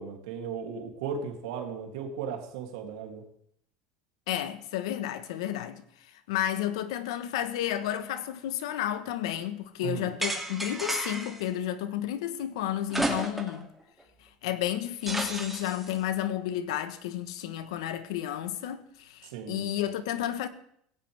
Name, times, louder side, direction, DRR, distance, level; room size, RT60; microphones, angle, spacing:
voice 1, 0.0-3.2 9.8-10.1 19.3-19.7, right 6 dB, 85° right, 2.9 m, -36 dB
voice 2, 4.3-5.8 6.3-13.7 14.4-20.5, left 11 dB, 85° left, 1.2 m, -32 dB
sound 1, 10.2-11.4 12.9-13.6 14.0-14.1 15.1-15.9, right 1 dB, 5° right, 2.6 m, -32 dB
17.0 x 15.5 x 3.5 m
supercardioid pair, 110°, 3 cm